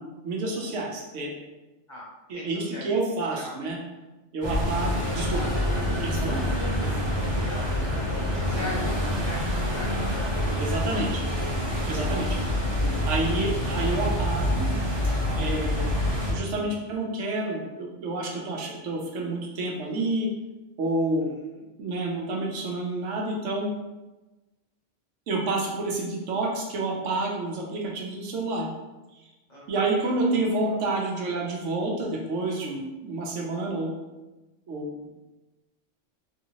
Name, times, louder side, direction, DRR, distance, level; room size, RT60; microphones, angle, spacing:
voice 1, 0.0-1.3 2.3-3.8 4.3-5.5 6.0-6.4 10.6-11.2 11.9-12.3 13.1-14.6 15.4-15.9 16.3-20.3 20.8-21.3 21.8-23.7 25.3-28.7 29.7-33.9 34.7-34.9, right 2 dB, 80° right, -1 dB, 1.0 m, -29 dB
voice 2, 1.9-2.9 3.2-3.8 7.4-10.8 11.2-11.3 12.1-12.9 21.0-21.6 29.5-29.9 30.6-30.8, left 1 dB, 40° left, -6 dB, 1.1 m, -42 dB
sound 1, 4.4-16.3, left 1 dB, 25° right, 0.7 m, -26 dB
3.3 x 2.7 x 2.8 m, 1.1 s
omnidirectional pair, 1.2 m